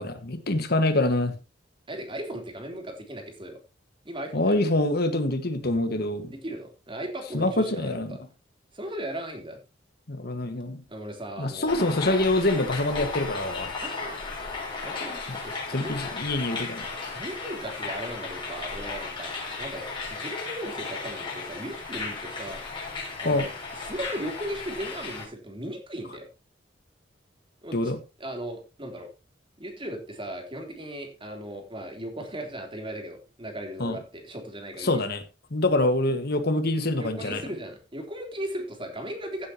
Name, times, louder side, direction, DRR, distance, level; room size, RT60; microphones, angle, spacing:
voice 1, 0.0-1.3 4.3-6.3 7.3-8.2 10.1-10.8 11.4-13.7 15.3-15.4 15.7-16.8 23.2-23.5 27.7-28.0 33.8-34.0 34.8-35.2 35.5-37.4, left 2 dB, 60° left, 1.6 m, -25 dB
voice 2, 1.9-3.6 4.0-4.6 6.3-8.2 8.7-9.6 10.9-11.8 13.8-14.3 14.8-16.1 17.1-19.3 19.6-22.6 23.2-26.3 27.6-27.9 28.2-29.1 29.6-35.0 37.0-39.5, right 1 dB, 30° right, 3.4 m, -37 dB
sound 1, 11.7-25.2, left 4 dB, 25° left, 6.4 m, -35 dB
16.0 x 8.3 x 2.9 m
head